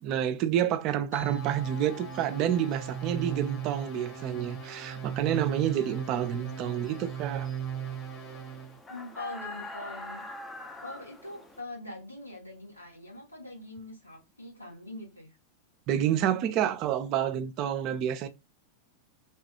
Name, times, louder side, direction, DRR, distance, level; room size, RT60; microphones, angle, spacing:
voice 1, 0.0-7.5 15.9-18.3, right 10 dB, 40° right, 0.4 m, -29 dB
sound 1, 1.1-6.1, left 3 dB, 65° left, 1.1 m, -50 dB
sound 2, 1.2-8.8, right 8 dB, 30° left, 1.0 m, -37 dB
sound 3, 1.4-11.6, left 1 dB, 10° left, 0.5 m, -47 dB
voice 2, 8.9-10.2 10.8-15.4, left 2 dB, 85° left, 1.2 m, -43 dB
3.0 x 2.3 x 2.8 m
figure-of-eight pair, 90°, 0 cm